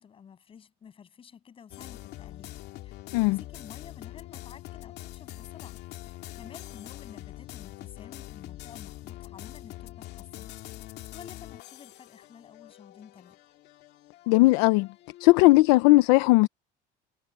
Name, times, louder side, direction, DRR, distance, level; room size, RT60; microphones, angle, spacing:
voice 1, 0.0-2.6 2.8-10.5 11.1-13.4, left 7 dB, 25° left, 7.8 m, -51 dB
sound 1, 1.7-15.6, left 15 dB, 55° left, 2.4 m, -44 dB
voice 2, 14.3-14.9 15.2-16.5, left 21 dB, 85° left, 0.8 m, -18 dB
cardioid pair, 155°, 20 cm